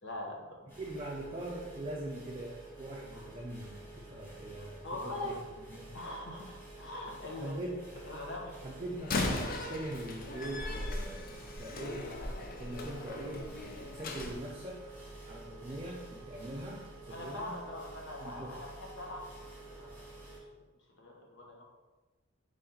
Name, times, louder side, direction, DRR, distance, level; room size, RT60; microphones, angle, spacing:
voice 1, 0.0-0.8 3.1-3.3 4.6-5.4 5.9-7.6 8.0-8.7 17.1-19.9 20.2-20.6 21.0-21.6, left 1 dB, 65° left, -1 dB, 1.0 m, -43 dB
sound 1, 0.7-20.4, right 2 dB, 10° left, 1.5 m, -50 dB
voice 2, 0.8-5.0 5.2-5.3 5.7-5.9 7.4-8.0 8.6-12.1 12.6-13.5 13.8-15.0 15.3-17.5 18.2-18.5, right 1 dB, 30° right, -4 dB, 0.5 m, -42 dB
Slam, 9.0-14.3, left 2 dB, 45° left, 0.5 m, -38 dB
4.1 x 3.2 x 3.9 m, 1.2 s
head